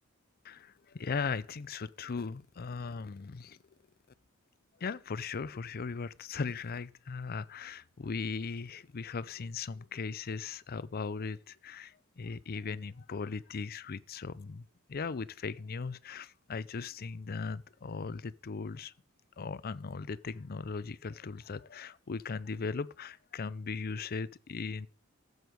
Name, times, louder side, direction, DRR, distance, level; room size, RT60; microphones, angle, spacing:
voice 1, 0.4-3.6 4.8-18.9 19.4-24.9, left 4 dB, 45° left, 0.5 m, -38 dB
14.0 x 8.0 x 5.1 m
head